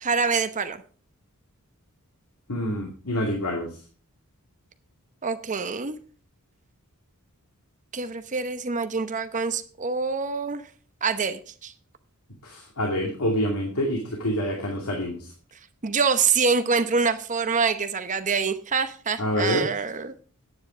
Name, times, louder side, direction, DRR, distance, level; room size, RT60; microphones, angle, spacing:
voice 1, 0.0-0.8 5.2-6.0 7.9-10.6 11.0-11.7 15.8-20.2, right 5 dB, 35° right, 0.8 m, -25 dB
voice 2, 2.5-3.7 12.4-15.2 19.2-19.6, equal, 80° left, 2.4 m, -27 dB
10.0 x 9.5 x 5.0 m
head